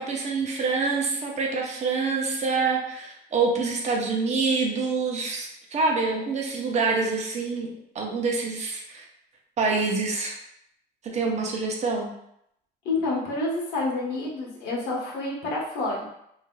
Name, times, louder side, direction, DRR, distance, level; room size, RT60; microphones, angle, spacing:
voice 1, 0.0-9.0 9.6-10.3 11.1-12.1, right 4 dB, 40° right, 0 dB, 0.7 m, -26 dB
voice 2, 12.8-16.1, left 2 dB, 85° left, -4 dB, 1.1 m, -28 dB
3.2 x 2.7 x 2.2 m, 0.76 s
cardioid pair, 110°, 17 cm